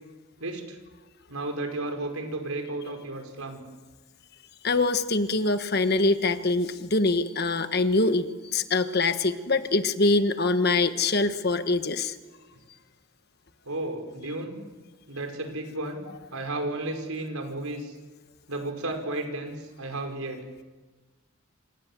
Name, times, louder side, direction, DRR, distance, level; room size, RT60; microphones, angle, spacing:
voice 1, 0.4-0.8 1.3-3.6 13.7-14.6 15.1-16.0 16.3-17.9 18.5-20.4, right 2 dB, 90° right, 4 dB, 5.3 m, -33 dB
voice 2, 4.6-12.1, left 3 dB, 45° left, 10 dB, 1.4 m, -24 dB
28.0 x 28.0 x 7.6 m, 1.2 s
head